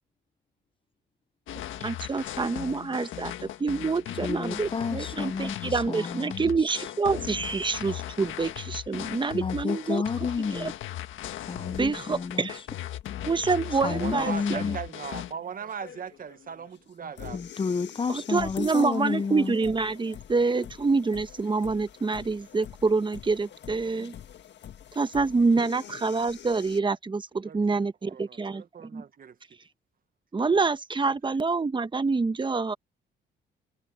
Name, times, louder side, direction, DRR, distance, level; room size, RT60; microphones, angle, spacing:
sound 1, 1.5-15.3, left 12 dB, 80° left, 1.7 m, -38 dB
voice 1, 1.8-10.0 10.5-10.7 11.8-12.6 13.2-14.8 18.1-24.1 24.9-29.0 30.3-32.7, right 4 dB, 25° right, 1.1 m, -27 dB
voice 2, 4.2-6.4 9.3-10.7 11.5-12.5 13.8-14.8 17.3-19.5, left 5 dB, 25° left, 0.6 m, -30 dB
sound 2, 11.7-26.8, left 9 dB, 65° left, 1.6 m, -47 dB
voice 3, 13.9-17.4 27.3-29.4, right 7 dB, 45° right, 1.3 m, -39 dB
cardioid pair, 90°, 20 cm